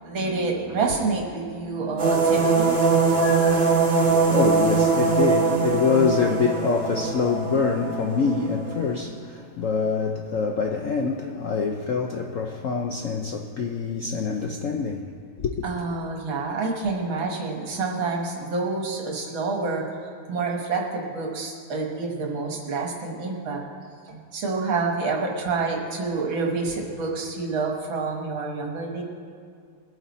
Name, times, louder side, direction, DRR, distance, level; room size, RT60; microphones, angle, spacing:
voice 1, 0.0-2.8 15.6-20.0 20.3-23.6 24.1-29.0, right 3 dB, 75° right, 2.3 m, -28 dB
sound 1, 2.0-9.0, right 4 dB, 35° right, 2.4 m, -22 dB
voice 2, 3.2-15.1 15.4-15.5, left 5 dB, 75° left, 0.7 m, -25 dB
21.0 x 9.2 x 4.2 m
omnidirectional pair, 2.2 m